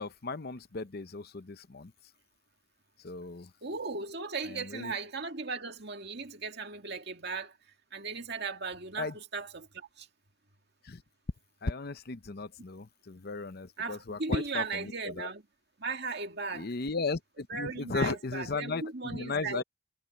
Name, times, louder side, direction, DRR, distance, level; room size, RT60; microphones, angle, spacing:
voice 1, 0.0-1.9 3.0-3.5 4.4-5.0 9.0-9.2 10.8-11.0 11.6-15.3 16.5-19.6, left 3 dB, 50° left, 0.7 m, -36 dB
voice 2, 3.6-7.6 7.9-10.1 13.8-15.4 15.8-16.7 17.5-19.6, right 4 dB, 55° right, 2.2 m, -37 dB
head